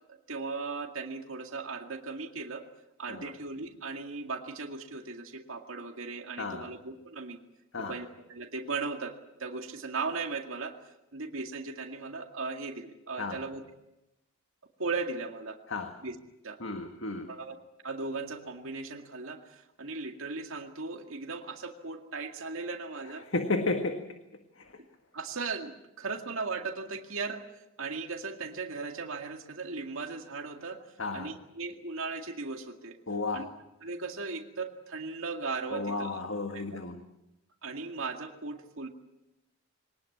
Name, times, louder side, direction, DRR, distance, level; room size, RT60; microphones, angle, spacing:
voice 1, 0.3-2.6 3.0-7.4 7.8-10.8 11.1-13.6 14.8-15.6 16.0-16.2 16.4-16.6 17.3-17.6 17.8-23.2 25.1-27.4 27.8-30.9 31.1-33.0 33.3-33.5 33.8-36.2 36.5-36.8 37.6-38.9, right 4 dB, 65° right, 4 dB, 2.1 m, -37 dB
voice 2, 6.4-6.7 7.7-8.0 13.2-13.4 15.7-16.0 16.6-17.3 23.3-24.1 24.6-24.8 31.0-31.4 33.1-33.5 35.7-37.0, left 3 dB, 60° left, 6 dB, 1.7 m, -33 dB
23.5 x 19.5 x 8.6 m, 0.91 s
head